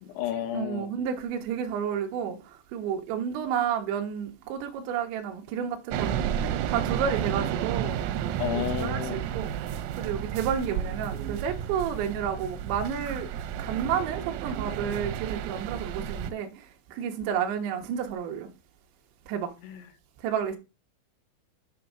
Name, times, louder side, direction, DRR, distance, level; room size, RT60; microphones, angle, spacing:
voice 1, 0.0-0.9 8.4-9.2 19.6-19.9, left 11 dB, 85° left, 3.9 m, -32 dB
voice 2, 0.5-2.4 2.7-8.0 8.5-9.5 10.0-13.3 13.6-16.5 16.9-18.5 19.3-19.5 20.2-20.6, right 8 dB, 75° right, 3.2 m, -31 dB
sound 1, 5.9-16.3, right 9 dB, 90° right, 3.5 m, -32 dB
9.2 x 4.3 x 5.9 m
omnidirectional pair, 5.9 m